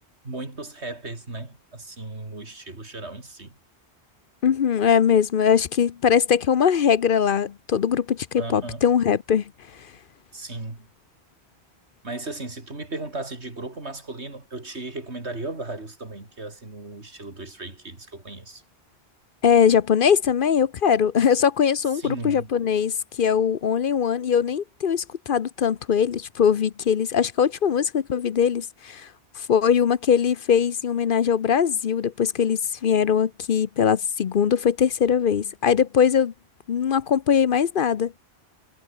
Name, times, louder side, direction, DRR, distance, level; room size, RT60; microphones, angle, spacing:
voice 1, 0.2-3.5 8.4-8.8 10.3-10.9 12.0-18.6 21.9-22.5, right 2 dB, 90° right, 4.3 m, -36 dB
voice 2, 4.4-9.4 19.4-29.1 29.4-36.3 36.7-38.1, left 7 dB, 55° left, 0.9 m, -21 dB
omnidirectional pair, 1.1 m